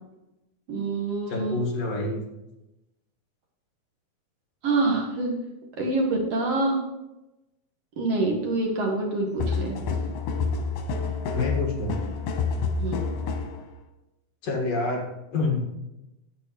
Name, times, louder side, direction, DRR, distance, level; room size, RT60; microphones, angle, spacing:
voice 1, 0.7-1.6 4.6-5.3 5.8-6.8 8.0-9.8 12.8-13.0, right 2 dB, 60° right, 0 dB, 2.3 m, -26 dB
voice 2, 1.3-2.3 11.3-12.0 14.4-15.7, left 3 dB, 60° left, -1 dB, 2.8 m, -27 dB
sound 1, 9.4-13.6, left 4 dB, 85° left, 2.6 m, -28 dB
11.0 x 8.4 x 3.1 m, 0.95 s
omnidirectional pair, 3.4 m